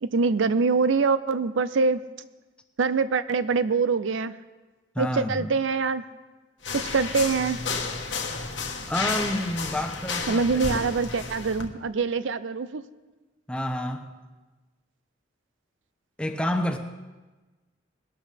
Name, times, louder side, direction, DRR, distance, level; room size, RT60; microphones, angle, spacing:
voice 1, 0.0-2.0 2.8-4.3 5.0-6.0 6.9-7.6 10.3-12.8, right 4 dB, 75° right, 14 dB, 0.5 m, -24 dB
voice 2, 4.9-5.5 8.9-10.4 13.5-14.1 16.2-16.8, left 1 dB, 5° left, 4 dB, 0.8 m, -28 dB
sound 1, 6.6-11.7, left 4 dB, 70° left, 1.3 m, -32 dB
20.5 x 12.0 x 3.4 m, 1.2 s
head